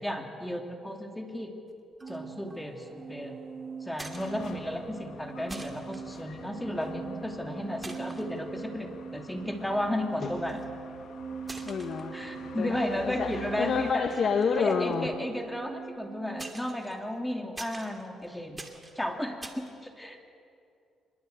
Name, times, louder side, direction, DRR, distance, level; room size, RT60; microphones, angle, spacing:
voice 1, 0.0-1.5 2.1-3.4 3.8-10.6 12.1-14.1 14.5-18.6 18.9-20.2, left 1 dB, 5° left, 3 dB, 3.0 m, -34 dB
sound 1, 2.0-2.2 2.5-2.8 3.9-4.8 5.0-5.1 5.5-6.0 7.1-7.4 7.8-8.3 8.9-9.0 10.3-10.8 11.4-12.6 13.0-13.4 13.9-15.9 16.4-19.7, right 2 dB, 15° right, 2.6 m, -46 dB
sound 2, 2.0-16.5, right 6 dB, 35° right, 1.4 m, -42 dB
sound 3, 4.1-13.9, left 7 dB, 70° left, 1.7 m, -49 dB
voice 2, 11.6-12.2 12.6-15.1, left 6 dB, 55° left, 5 dB, 1.5 m, -29 dB
25.0 x 22.0 x 8.1 m, 2.5 s
cardioid pair, 90°, 0 cm